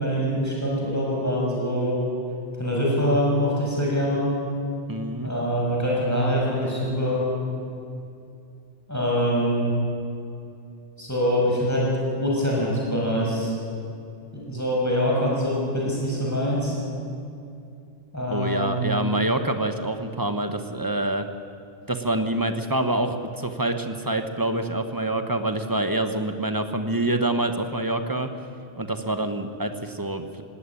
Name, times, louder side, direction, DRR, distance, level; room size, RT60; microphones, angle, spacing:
voice 1, 0.0-2.0 2.5-4.3 5.2-7.2 8.9-9.7 11.0-11.9 12.2-13.5 14.3-16.7 18.1-18.8, equal, 15° left, -4 dB, 6.6 m, -24 dB
voice 2, 4.9-5.3 18.3-21.3 21.9-28.3 28.8-30.4, right 1 dB, 20° right, 7 dB, 1.2 m, -26 dB
19.0 x 17.0 x 9.9 m, 2.6 s
omnidirectional pair, 1.2 m